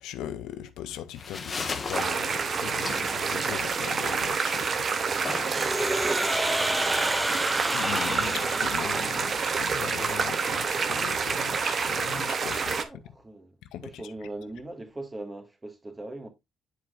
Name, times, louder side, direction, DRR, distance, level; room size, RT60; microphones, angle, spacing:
voice 1, 0.0-4.8 7.7-12.9 13.7-14.0, left 11 dB, 90° left, 0.6 m, -39 dB
sound 1, 0.9-9.9, left 4 dB, 35° left, 1.2 m, -39 dB
sound 2, 1.9-12.8, right 5 dB, 50° right, 0.8 m, -28 dB
sound 3, 5.4-9.5, equal, 5° right, 0.4 m, -30 dB
voice 2, 5.8-6.9 12.8-13.6 13.8-16.3, right 2 dB, 25° right, 1.7 m, -41 dB
9.4 x 4.5 x 2.4 m
cardioid pair, 90°, 0 cm